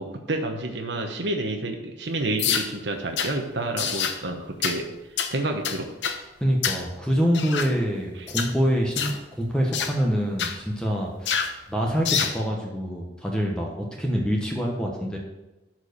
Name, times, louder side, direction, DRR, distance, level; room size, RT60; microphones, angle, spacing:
voice 1, 0.0-4.9 5.3-5.9 8.2-8.3, right 2 dB, 75° right, 3 dB, 1.1 m, -29 dB
sound 1, 2.4-2.7 3.2-3.3 3.8-4.2 4.6-4.8 5.2-5.3 5.6-6.2 6.6-6.8 7.3-7.7 8.3-8.5 9.0-9.2 9.7-9.9 10.4-10.6 11.3-11.5 12.0-12.4, left 7 dB, 80° left, 0.9 m, -26 dB
voice 2, 6.4-11.4 11.7-15.2, equal, 5° left, -1 dB, 1.1 m, -25 dB
11.5 x 4.7 x 6.7 m, 1.0 s
head